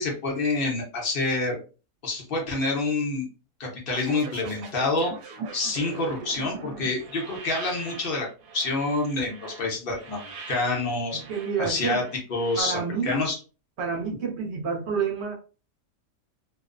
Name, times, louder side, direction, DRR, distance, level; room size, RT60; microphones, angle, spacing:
voice 1, 0.0-1.6 2.0-3.3 3.6-5.1 5.5-8.3 8.5-11.2 11.6-12.0 12.3-13.4, left 3 dB, 50° left, 0 dB, 0.7 m, -27 dB
sound 1, 3.9-12.6, right 4 dB, 75° right, 1.1 m, -42 dB
voice 2, 11.1-12.0 12.6-13.2 13.8-15.3, right 5 dB, 55° right, -1 dB, 0.8 m, -29 dB
2.8 x 2.0 x 2.4 m, 0.34 s
omnidirectional pair, 1.8 m